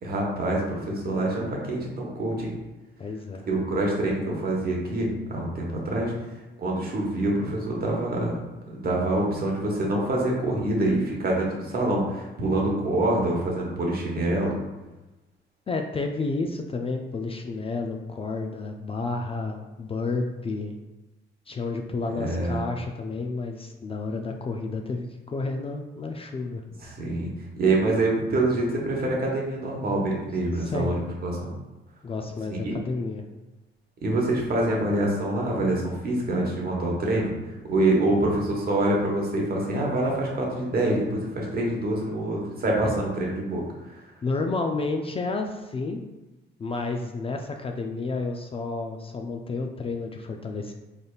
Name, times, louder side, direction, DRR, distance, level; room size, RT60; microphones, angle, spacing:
voice 1, 0.0-2.5 3.5-6.1 6.6-8.3 8.7-14.6 22.0-22.6 26.8-27.3 27.6-31.5 32.5-32.7 34.0-37.3 37.7-43.6, right 1 dB, 50° right, -2 dB, 1.1 m, -26 dB
voice 2, 3.0-3.5 15.7-20.8 21.5-26.6 30.6-30.9 32.0-33.2 42.8-42.9 44.2-46.0 46.6-50.7, left 3 dB, 30° left, 3 dB, 0.3 m, -31 dB
4.0 x 3.4 x 2.3 m, 1.1 s
cardioid pair, 90°, 20 cm